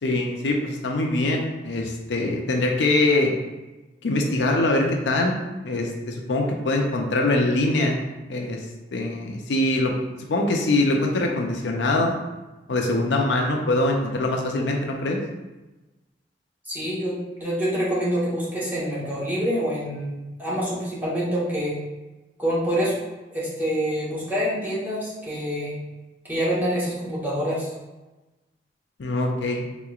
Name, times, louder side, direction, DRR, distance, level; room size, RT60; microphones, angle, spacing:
voice 1, 0.0-3.3 4.0-5.4 5.6-8.0 8.3-8.6 8.9-9.9 10.2-12.1 12.7-15.2 29.0-29.6, left 2 dB, 70° left, 1 dB, 0.5 m, -23 dB
voice 2, 16.7-21.8 22.4-22.9 23.3-25.8 26.3-27.7, equal, 10° right, -8 dB, 1.1 m, -26 dB
3.7 x 3.0 x 2.4 m, 1.1 s
head